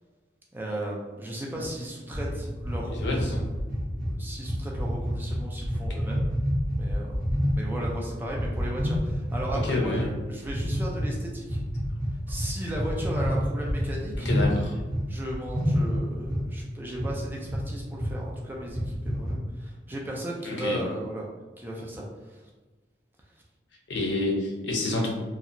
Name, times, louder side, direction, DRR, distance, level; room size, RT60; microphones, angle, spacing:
voice 1, 0.5-3.3 3.9-6.3 6.7-7.3 7.5-11.6 12.3-14.3 15.1-21.3 21.6-22.4, right 1 dB, 10° right, -3 dB, 0.4 m, -36 dB
sound 1, 2.1-7.9 8.3-10.1 10.5-11.1 11.5-15.0 15.3-16.5 17.0-17.1 17.5-17.7 18.0-18.1 18.6-19.3, equal, 50° right, 0.7 m, -28 dB
voice 2, 2.9-3.4 6.0-6.1 9.5-10.1 14.2-14.7 20.4-20.8 23.9-25.1, left 2 dB, 75° left, -1 dB, 0.6 m, -28 dB
2.7 x 2.1 x 2.5 m, 1.3 s
head